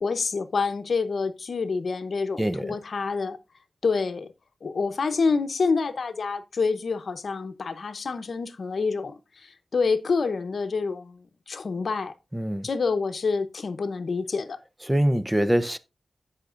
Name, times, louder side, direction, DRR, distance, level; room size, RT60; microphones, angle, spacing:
voice 1, 0.0-3.4 3.8-4.3 4.6-12.1 12.6-14.6, left 4 dB, 70° left, 0.8 m, -27 dB
voice 2, 2.4-2.7 12.3-12.7 14.8-15.8, right 1 dB, 10° right, 0.6 m, -24 dB
16.0 x 5.8 x 2.5 m
wide cardioid pair, 100°, 0 cm